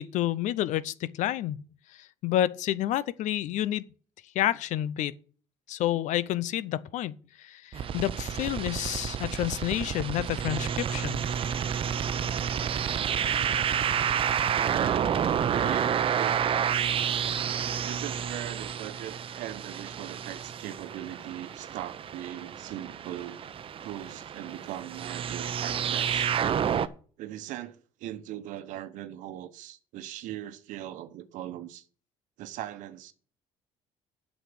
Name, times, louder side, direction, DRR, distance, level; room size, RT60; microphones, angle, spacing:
voice 1, 0.0-1.6 1.9-3.8 4.3-5.1 5.7-11.2, left 13 dB, 70° left, 0.7 m, -29 dB
sound 1, 7.7-26.9, right 8 dB, 45° right, 0.7 m, -30 dB
voice 2, 14.5-16.7 17.8-23.4 23.8-26.3 27.2-31.8 32.4-33.1, right 12 dB, 75° right, 1.1 m, -40 dB
8.1 x 6.3 x 7.8 m
supercardioid pair, 90°, 13 cm